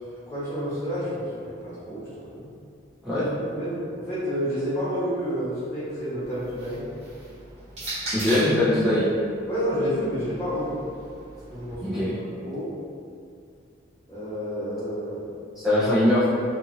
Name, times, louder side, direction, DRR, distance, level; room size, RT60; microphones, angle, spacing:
voice 1, 0.3-2.5 3.1-3.3 3.5-6.9 9.5-10.8 11.5-12.1 12.4-12.7 14.1-15.2, equal, 10° left, -14 dB, 1.2 m, -30 dB
sound 1, 6.3-8.7 9.6-11.7, right 1 dB, 35° right, 1.0 m, -37 dB
voice 2, 8.1-9.1 11.8-12.1 15.5-16.3, left 1 dB, 5° right, -13 dB, 0.4 m, -21 dB
2.9 x 2.4 x 2.7 m, 2.3 s
head